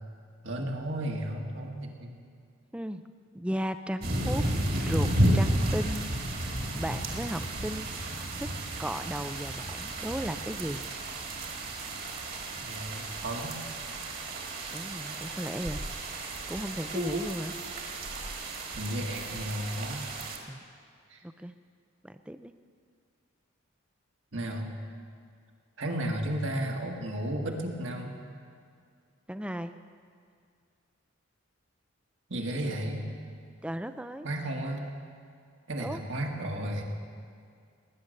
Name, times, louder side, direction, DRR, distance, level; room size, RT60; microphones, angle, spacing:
voice 1, 0.4-2.2 12.5-13.6 16.9-17.3 18.7-20.1 21.1-21.2 24.3-24.7 25.8-28.2 32.3-33.1 34.2-34.9 35.7-36.8, right 1 dB, 60° right, 1 dB, 1.8 m, -33 dB
voice 2, 2.7-3.0 3.3-4.5 4.8-6.1 6.7-7.9 8.4-8.5 8.8-10.9 14.7-15.8 16.5-17.5 20.5-20.6 21.2-21.5 22.0-22.5 29.3-29.7 33.6-34.3 35.8-36.0, equal, 5° right, 10 dB, 0.4 m, -35 dB
sound 1, 4.0-20.4, right 1 dB, 45° right, 1.9 m, -32 dB
19.0 x 9.8 x 6.6 m, 2.2 s
head